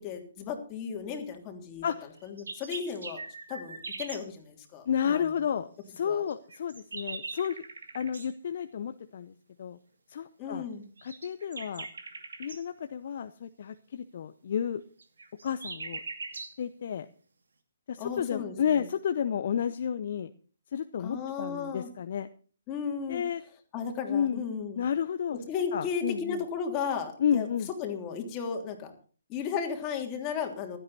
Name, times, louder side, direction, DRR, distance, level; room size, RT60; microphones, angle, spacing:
voice 1, 0.0-1.8 2.2-3.2 3.5-5.5 6.0-6.2 10.4-10.8 18.0-18.9 21.0-21.9 22.7-23.2 23.7-24.8 25.3-27.5 27.8-28.9 29.3-30.8, left 6 dB, 25° left, 3 dB, 3.1 m, -35 dB
sound 1, 2.2-4.2 6.3-8.3 11.0-12.6 15.0-16.6, right 3 dB, 70° right, 2.5 m, -41 dB
voice 2, 4.9-7.6 7.9-9.3 9.6-9.8 10.1-10.6 11.0-11.9 12.4-14.8 15.4-16.0 16.3-17.1 17.9-20.3 20.7-22.3 23.1-23.4 24.1-24.4 24.8-25.4 25.7-26.4 27.2-27.7, left 8 dB, 50° left, 10 dB, 0.7 m, -31 dB
16.0 x 13.0 x 4.2 m, 0.40 s
figure-of-eight pair, 135°, 0 cm